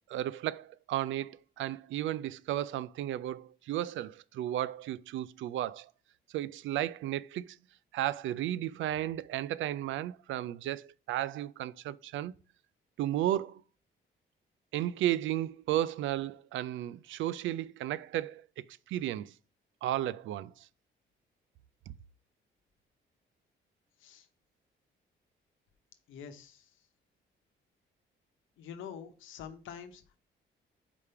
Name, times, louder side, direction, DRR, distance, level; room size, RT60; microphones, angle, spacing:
voice 1, 0.1-5.9 6.3-7.6 7.9-12.3 13.0-13.6 14.7-19.3 19.8-20.7, right 13 dB, 75° right, 0.4 m, -34 dB
voice 2, 26.1-26.7 28.6-30.2, left 8 dB, 85° left, 1.0 m, -46 dB
5.0 x 3.4 x 5.6 m
cardioid pair, 90°, 20 cm